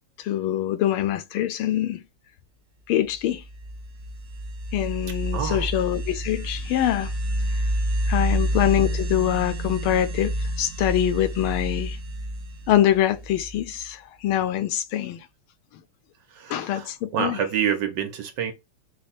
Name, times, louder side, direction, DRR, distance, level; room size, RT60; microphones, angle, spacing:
voice 1, 0.2-2.0 2.9-3.4 4.7-7.1 8.1-12.0 12.7-15.3 16.5-17.4, left 12 dB, 85° left, 1.5 m, -24 dB
sound 1, 3.3-13.8, right 1 dB, 40° right, 0.9 m, -29 dB
voice 2, 5.3-5.7 16.3-18.5, right 8 dB, 65° right, 1.4 m, -27 dB
5.2 x 2.3 x 4.1 m
omnidirectional pair, 2.3 m